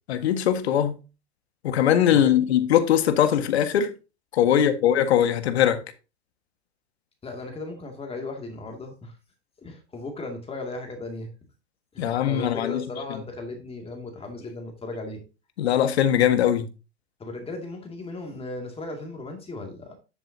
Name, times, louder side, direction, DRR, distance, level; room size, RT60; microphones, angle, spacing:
voice 1, 0.1-1.0 1.6-3.9 4.3-5.8 12.0-12.8 15.6-16.7, left 10 dB, 70° left, 1.7 m, -21 dB
voice 2, 7.2-9.2 9.6-11.3 11.9-15.2 17.2-19.9, left 2 dB, 15° left, 2.4 m, -36 dB
11.0 x 7.1 x 2.8 m
hypercardioid pair, 110°, 33 cm